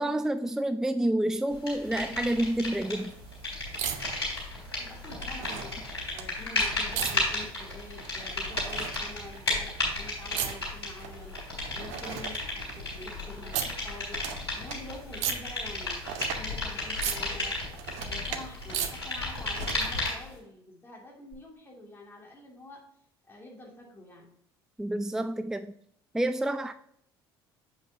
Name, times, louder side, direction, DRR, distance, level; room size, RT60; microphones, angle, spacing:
voice 1, 0.0-3.1 24.8-25.7 26.1-26.7, right 1 dB, 5° right, 0.4 m, -28 dB
sound 1, 1.7-3.1 3.3-20.3, left 2 dB, 80° left, 3.0 m, -33 dB
sound 2, 1.8-20.0 21.3-21.4, right 9 dB, 60° right, 0.7 m, -39 dB
voice 2, 4.6-17.6 18.0-22.8 23.3-24.4, left 2 dB, 15° left, 2.8 m, -47 dB
7.6 x 5.4 x 2.9 m
figure-of-eight pair, 60°, 13 cm